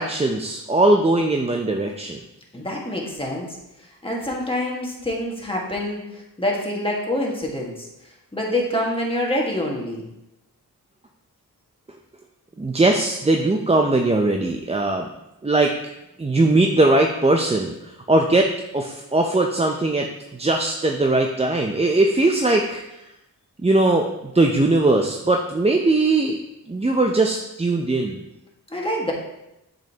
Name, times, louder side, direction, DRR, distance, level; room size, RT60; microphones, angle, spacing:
voice 1, 0.0-2.2 12.6-15.1 15.4-15.7 16.2-17.7 18.1-20.1 20.4-22.8 23.6-24.1 24.3-26.4 26.7-28.2, right 2 dB, 15° right, 2 dB, 0.5 m, -20 dB
voice 2, 2.5-10.0 28.7-29.1, left 1 dB, 15° left, -2 dB, 1.6 m, -26 dB
7.3 x 5.3 x 2.9 m, 0.91 s
wide cardioid pair, 65°, 38 cm